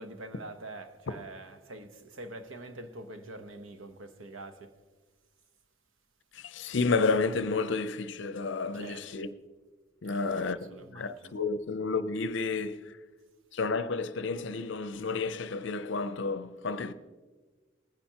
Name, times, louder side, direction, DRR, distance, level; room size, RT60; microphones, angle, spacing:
voice 1, 0.0-4.7 8.7-9.1 10.0-11.3, right 2 dB, 80° right, 0.9 m, -45 dB
voice 2, 6.3-9.3 10.0-13.0 13.5-16.9, left 4 dB, 65° left, 0.6 m, -31 dB
19.5 x 10.0 x 2.9 m
head